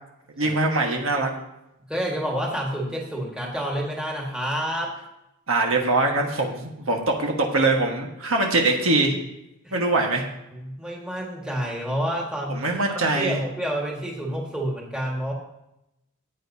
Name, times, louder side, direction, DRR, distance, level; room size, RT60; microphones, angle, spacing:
voice 1, 0.4-1.3 5.5-9.2 9.7-10.3 12.5-13.4, right 2 dB, 65° right, 1 dB, 1.4 m, -22 dB
voice 2, 1.9-5.0 9.6-9.8 10.5-15.3, equal, 5° right, -3 dB, 1.7 m, -29 dB
14.0 x 8.8 x 2.8 m, 0.87 s
head